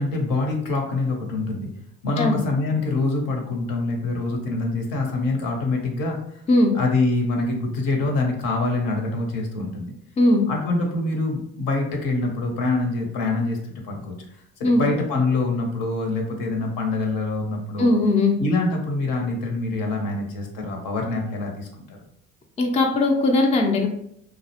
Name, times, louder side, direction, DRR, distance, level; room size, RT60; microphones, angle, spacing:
voice 1, 0.0-1.7 2.0-6.4 6.7-9.9 10.5-17.9 18.4-22.0, left 2 dB, 65° left, 2 dB, 0.8 m, -25 dB
voice 2, 17.8-18.4 22.6-23.9, left 2 dB, 20° left, 2 dB, 0.4 m, -19 dB
2.3 x 2.0 x 2.8 m, 0.72 s
supercardioid pair, 70°, 37 cm